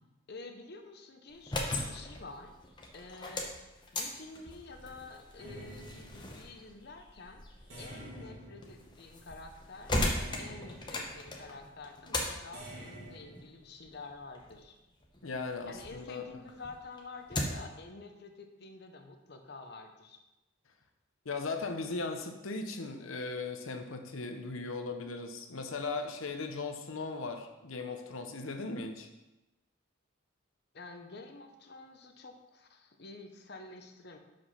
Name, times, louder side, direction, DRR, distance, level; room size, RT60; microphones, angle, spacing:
voice 1, 0.3-2.5 2.9-7.4 7.8-14.8 15.6-20.2 30.7-34.2, left 3 dB, 50° left, 5 dB, 0.8 m, -49 dB
sound 1, 1.3-16.0 16.4-17.8, left 1 dB, 20° left, 0.8 m, -39 dB
sound 2, 5.4-6.7 7.7-9.4 10.2-11.3 12.5-13.4, right 1 dB, 65° right, 2.0 m, -48 dB
voice 2, 15.2-16.2 21.2-29.1, left 3 dB, 85° left, 5 dB, 0.9 m, -38 dB
6.1 x 5.0 x 5.6 m, 1.0 s
head